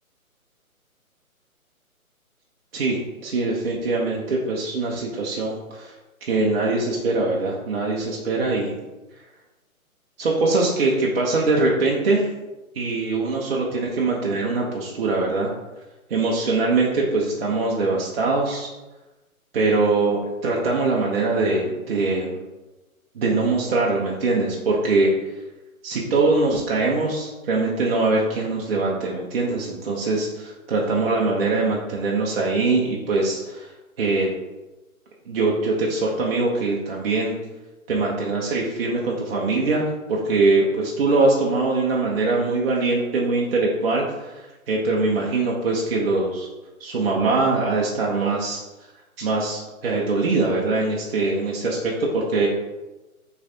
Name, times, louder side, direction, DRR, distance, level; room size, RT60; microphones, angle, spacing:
voice 1, 2.7-5.9 6.2-8.8 10.2-12.2 12.7-15.5 16.1-18.7 19.5-22.4 23.1-25.1 25.8-33.7 34.0-34.3 35.3-37.3 37.9-46.5 46.8-48.6 49.2-52.5, right 3 dB, 45° right, -3 dB, 0.7 m, -22 dB
6.0 x 3.2 x 2.7 m, 1.1 s
figure-of-eight pair, 140°, 43 cm